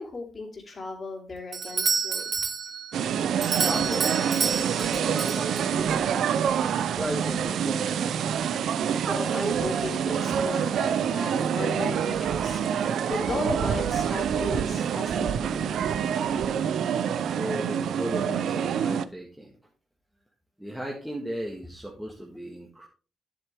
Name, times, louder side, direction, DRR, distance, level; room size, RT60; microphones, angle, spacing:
voice 1, 0.0-2.2 8.8-15.8, left 3 dB, 35° left, 3 dB, 2.7 m, -36 dB
Doorbell, 1.5-6.0, right 5 dB, 40° right, 0.9 m, -29 dB
sound 1, 2.9-19.1, right 8 dB, 75° right, 0.5 m, -26 dB
voice 2, 3.6-4.1 4.7-6.2 7.0-8.4 17.4-19.5 20.6-22.9, right 1 dB, 5° right, -2 dB, 1.5 m, -35 dB
9.7 x 7.8 x 3.4 m, 0.35 s
cardioid pair, 135°, 0 cm